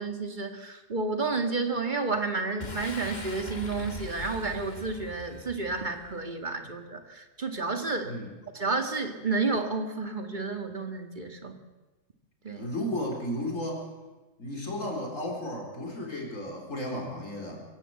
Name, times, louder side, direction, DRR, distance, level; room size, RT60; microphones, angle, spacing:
voice 1, 0.0-8.1 8.5-11.6 12.4-12.7, right 3 dB, 35° right, 5 dB, 2.1 m, -31 dB
Boom, 2.6-6.2, left 2 dB, 35° left, 1.6 m, -41 dB
voice 2, 12.5-13.9 14.4-17.6, left 1 dB, 80° left, 0 dB, 4.6 m, -34 dB
23.5 x 15.5 x 7.8 m, 1.2 s
omnidirectional pair, 1.3 m